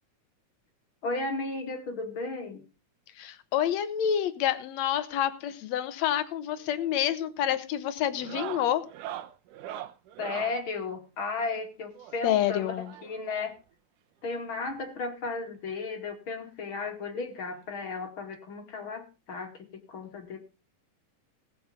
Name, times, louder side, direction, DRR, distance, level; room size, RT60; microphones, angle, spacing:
voice 1, 1.0-2.6 10.2-12.7 13.0-13.6 14.2-20.4, left 3 dB, 45° left, 4 dB, 3.0 m, -34 dB
voice 2, 3.2-8.8 12.2-12.9, left 10 dB, 65° left, 13 dB, 2.2 m, -28 dB
sound 1, 6.6-6.9 7.2-7.6 8.1-10.6 11.9-13.3 14.4-14.5 14.7-14.8 15.3-15.4 16.6-16.7 18.1-18.2, right 11 dB, 90° right, 2.5 m, -41 dB
19.5 x 6.7 x 5.1 m, 0.31 s
omnidirectional pair, 3.5 m